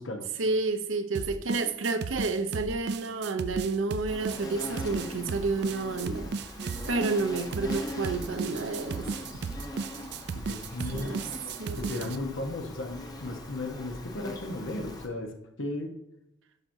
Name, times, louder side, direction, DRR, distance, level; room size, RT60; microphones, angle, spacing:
voice 1, 0.4-6.3 6.9-9.1 10.9-11.3 11.6-11.9, right 3 dB, 80° right, 8 dB, 0.8 m, -30 dB
sound 1, 1.1-12.2, right 5 dB, 55° right, 0.3 m, -35 dB
Insect, 4.1-15.1, left 1 dB, 20° left, 0.9 m, -41 dB
voice 2, 10.3-11.2 11.8-16.0, left 2 dB, 80° left, 3 dB, 1.1 m, -35 dB
11.0 x 6.0 x 2.7 m, 0.87 s
head